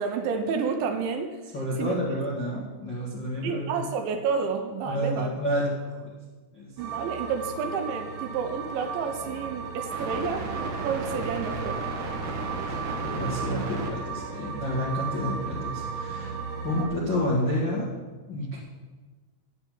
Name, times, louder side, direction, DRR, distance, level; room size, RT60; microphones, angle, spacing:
voice 1, 0.0-1.4 1.8-2.0 3.4-5.3 6.8-11.8 16.8-16.9, right 5 dB, 80° right, 6 dB, 2.9 m, -30 dB
voice 2, 1.5-3.8 4.8-6.2 6.5-6.7 12.2-16.3 16.6-17.9 18.3-18.6, equal, 50° left, -7 dB, 1.3 m, -30 dB
sound 1, 6.8-16.8, right 4 dB, 60° right, 2.2 m, -33 dB
8.4 x 8.0 x 9.2 m, 1.3 s
omnidirectional pair, 5.7 m